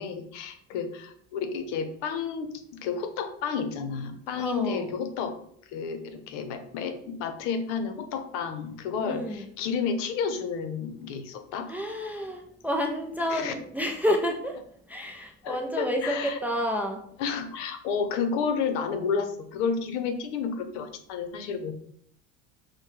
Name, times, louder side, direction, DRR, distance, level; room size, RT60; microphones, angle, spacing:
voice 1, 0.0-5.3 5.7-11.7 13.3-13.5 15.4-16.4 17.2-21.7, left 6 dB, 80° left, 8 dB, 0.8 m, -31 dB
voice 2, 4.4-4.9 9.0-9.5 11.7-14.6 14.9-17.0, equal, 5° right, 2 dB, 0.3 m, -29 dB
6.4 x 2.2 x 3.2 m, 0.65 s
supercardioid pair, 125°, 35 cm